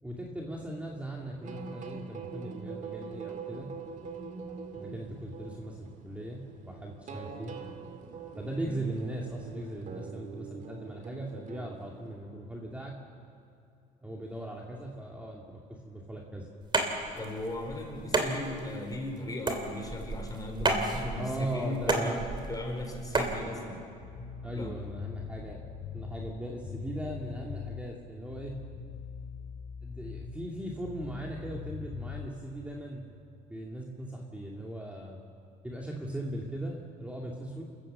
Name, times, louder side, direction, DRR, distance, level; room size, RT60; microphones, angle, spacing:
voice 1, 0.0-3.7 4.7-7.6 8.4-13.0 14.0-16.5 21.1-22.2 24.4-25.6 25.9-28.6 29.8-33.0 33.5-35.2 35.6-37.6, right 1 dB, 10° right, -2 dB, 2.3 m, -38 dB
sound 1, 1.4-12.2, right 5 dB, 50° right, 2.2 m, -43 dB
sound 2, 16.6-23.4, right 3 dB, 25° right, 3.0 m, -32 dB
voice 2, 17.2-22.2 22.5-23.8 24.4-24.7, left 2 dB, 20° left, 2 dB, 4.8 m, -37 dB
sound 3, 24.0-27.9 28.3-30.5 30.8-32.3, left 7 dB, 55° left, 3.9 m, -42 dB
28.0 x 14.5 x 7.6 m, 2.5 s
cardioid pair, 110°, 17 cm